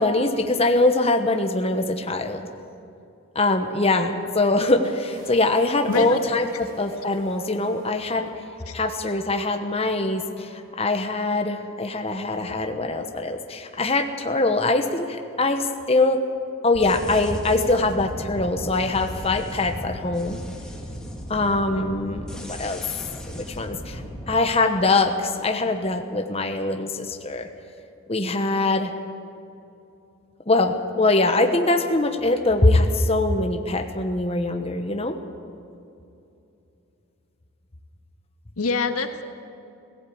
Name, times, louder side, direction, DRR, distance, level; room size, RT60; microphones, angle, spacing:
voice 1, 0.0-2.5 3.3-8.3 8.7-16.2 16.6-20.4 21.3-22.8 23.3-24.0 24.3-27.5 28.1-28.9 30.5-35.1, left 2 dB, 25° left, 4 dB, 1.1 m, -23 dB
Water tap faucet, 4.8-11.1, equal, 40° right, 4.7 m, -47 dB
voice 2, 5.9-6.2 8.7-8.8 38.6-39.2, left 4 dB, 80° left, 6 dB, 1.6 m, -25 dB
sound 1, 16.7-24.4, equal, 5° left, 2.0 m, -37 dB
18.0 x 17.0 x 8.7 m, 2.7 s
head